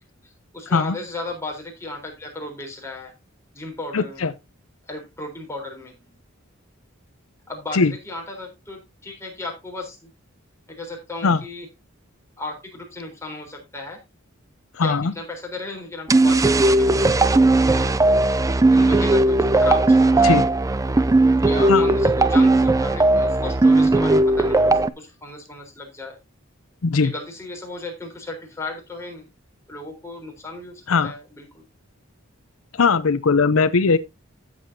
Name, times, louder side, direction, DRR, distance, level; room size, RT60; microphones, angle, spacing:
voice 1, 0.2-3.1 3.5-4.3 4.9-6.0 7.5-10.1 10.7-11.7 12.4-14.0 14.8-18.1 18.7-20.4 21.4-26.2 27.0-29.3 29.7-31.6, left 2 dB, 15° left, 3.9 m, -35 dB
voice 2, 3.9-4.3 7.7-7.9 11.2-11.4 14.8-15.1 20.2-20.5 21.7-21.8 26.8-27.1 30.9-31.1 32.8-34.0, left 4 dB, 85° left, 0.6 m, -19 dB
sound 1, 16.1-24.9, right 2 dB, 15° right, 0.4 m, -17 dB
13.5 x 7.7 x 2.8 m
head